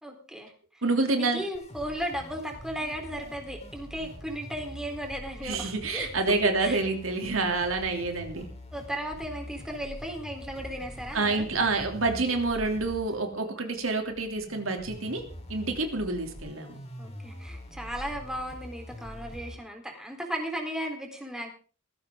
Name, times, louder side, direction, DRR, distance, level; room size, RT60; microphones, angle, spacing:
voice 1, 0.0-0.8 1.1-6.1 6.6-6.8 8.7-11.5 17.0-21.5, equal, 5° right, 3 dB, 3.8 m, -36 dB
voice 2, 0.8-1.4 5.4-8.5 11.1-15.2 15.5-16.8, right 3 dB, 75° right, 4 dB, 3.1 m, -28 dB
sound 1, 1.5-19.6, equal, 35° left, 4.9 m, -44 dB
19.0 x 15.0 x 3.8 m, 0.39 s
head